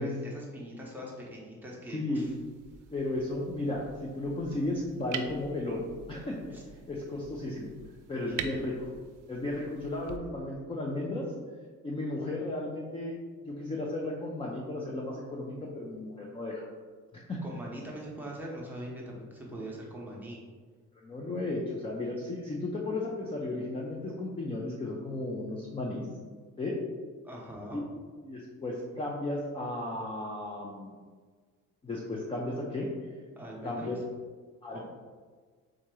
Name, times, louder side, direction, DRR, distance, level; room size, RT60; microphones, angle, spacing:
voice 1, 0.0-2.3 6.5-6.6 8.3-8.5 17.4-20.4 27.2-27.8 33.3-33.9 34.7-34.8, right 1 dB, 5° right, -4 dB, 0.8 m, -42 dB
voice 2, 1.9-2.3 2.9-6.5 6.9-7.7 8.1-8.7 9.3-11.2 11.8-16.7 17.3-17.4 21.0-26.1 26.6-26.8 27.7-27.8 28.2-31.0 31.8-33.1 33.6-34.0 34.6-34.8, left 2 dB, 20° left, -3 dB, 0.4 m, -34 dB
sound 1, 2.1-10.2, right 8 dB, 80° right, 0.4 m, -45 dB
3.7 x 2.8 x 4.7 m, 1.5 s
cardioid pair, 165°, 30 cm